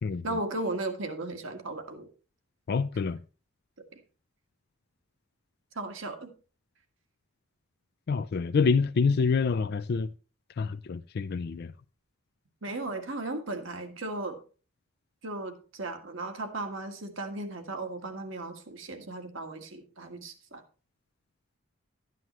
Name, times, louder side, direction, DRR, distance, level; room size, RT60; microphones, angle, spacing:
voice 1, 0.2-2.1 3.9-4.0 5.7-6.3 12.6-14.4 15.2-20.6, right 2 dB, 70° right, 1.7 m, -36 dB
voice 2, 2.7-3.2 8.1-10.1 10.6-11.7, left 5 dB, 50° left, 0.4 m, -27 dB
12.5 x 9.3 x 3.1 m
head